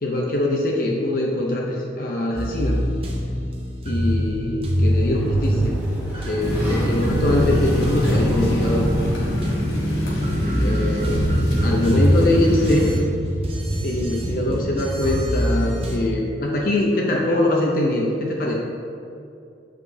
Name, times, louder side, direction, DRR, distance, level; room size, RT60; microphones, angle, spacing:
voice 1, 0.0-2.8 3.8-5.8 6.3-8.9 10.6-11.3 11.6-12.9 13.8-18.6, left 1 dB, 50° left, -2 dB, 0.5 m, -23 dB
sound 1, 2.4-16.0, equal, 30° right, 0.8 m, -24 dB
Sliding door, 4.8-9.7, equal, 10° right, 1.2 m, -31 dB
sound 2, 6.4-13.0, equal, 65° left, 1.3 m, -24 dB
voice 2, 10.0-10.9, equal, 20° left, -3 dB, 0.8 m, -37 dB
7.8 x 4.9 x 2.7 m, 2.5 s
head